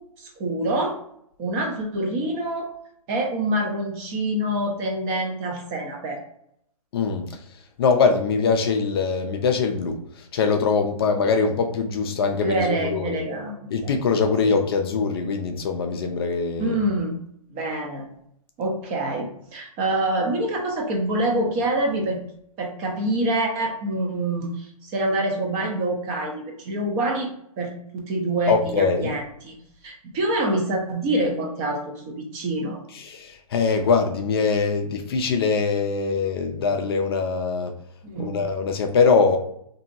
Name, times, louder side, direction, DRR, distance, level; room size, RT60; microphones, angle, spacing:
voice 1, 0.2-1.0 1.4-2.7 3.1-6.2 12.4-13.6 14.4-14.5 16.6-17.2 17.5-18.1 18.6-22.2 22.6-27.3 27.6-29.6 29.8-32.8 38.0-38.3, right 1 dB, 25° right, 1 dB, 0.5 m, -26 dB
voice 2, 6.9-7.4 7.8-13.2 13.7-16.8 28.5-29.1 33.0-37.7 38.2-39.4, left 5 dB, 40° left, 4 dB, 0.4 m, -22 dB
2.8 x 2.6 x 2.4 m, 0.71 s
hypercardioid pair, 145°, 19 cm